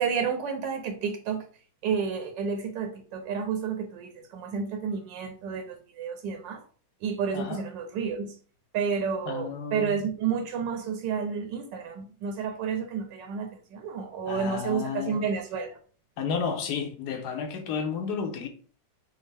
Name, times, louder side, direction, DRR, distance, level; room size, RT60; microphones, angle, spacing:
voice 1, 0.0-1.4 1.8-6.6 7.0-8.4 8.7-15.8, right 6 dB, 80° right, 1.2 m, -30 dB
voice 2, 9.2-10.0 14.3-15.2 16.2-18.5, left 6 dB, 70° left, 1.2 m, -32 dB
5.2 x 2.0 x 3.3 m
omnidirectional pair, 1.9 m